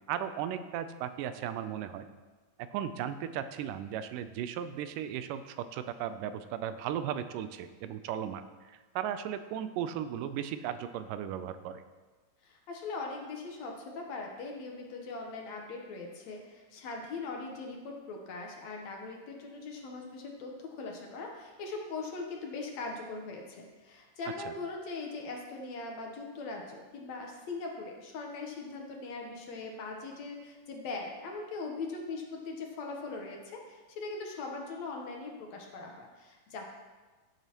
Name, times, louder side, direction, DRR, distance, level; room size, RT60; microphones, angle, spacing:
voice 1, 0.1-2.1 2.6-11.8, right 9 dB, 85° right, 11 dB, 2.2 m, -36 dB
voice 2, 12.4-36.7, left 3 dB, 65° left, 1 dB, 2.1 m, -40 dB
16.0 x 8.0 x 3.0 m, 1.3 s
omnidirectional pair, 3.7 m